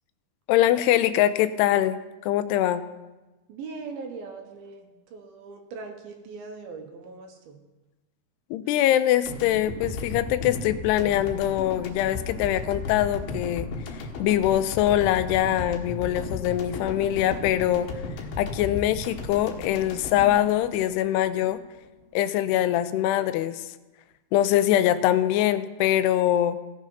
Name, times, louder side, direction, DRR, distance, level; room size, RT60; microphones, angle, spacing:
voice 1, 0.5-2.9 8.5-17.9 18.4-21.6 22.1-23.7 24.3-26.6, left 12 dB, 85° left, 13 dB, 2.6 m, -23 dB
voice 2, 3.5-7.6, right 4 dB, 70° right, 4 dB, 2.7 m, -40 dB
sound 1, 9.3-21.5, left 3 dB, 70° left, 2.9 m, -35 dB
17.0 x 6.3 x 5.5 m, 1.1 s
omnidirectional pair, 4.7 m